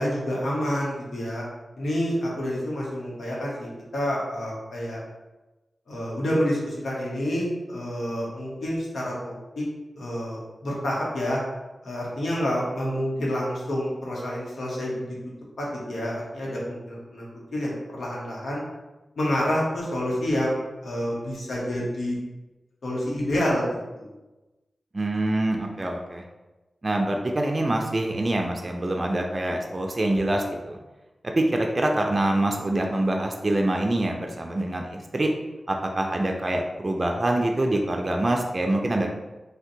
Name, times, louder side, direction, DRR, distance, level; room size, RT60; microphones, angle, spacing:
voice 1, 0.0-1.4 1.8-5.0 5.9-9.6 9.9-11.4 11.8-15.1 15.6-17.3 17.5-18.6 19.2-22.2 22.8-23.6 24.0-24.1, equal, 80° left, -4 dB, 0.9 m, -28 dB
voice 2, 24.9-26.2 26.8-30.8 31.2-35.3 35.7-39.1, right 1 dB, 40° right, 2 dB, 0.4 m, -25 dB
2.6 x 2.1 x 3.7 m, 1.1 s
cardioid pair, 40°, 0 cm